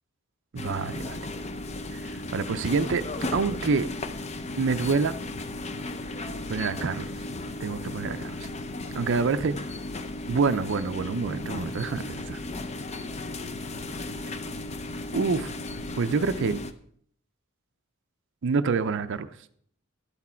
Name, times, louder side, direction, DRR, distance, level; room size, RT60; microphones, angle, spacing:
voice 1, 0.5-1.2 1.9-3.0 3.3-3.9 4.6-5.1 6.5-7.1 7.6-8.5 8.9-9.6 10.3-12.4 15.1-15.5 16.0-16.6 18.4-19.3, right 4 dB, 60° right, 10 dB, 0.5 m, -27 dB
sound 1, 0.6-16.7, left 2 dB, 30° left, 0.6 m, -35 dB
12.0 x 8.4 x 4.4 m, 0.63 s
head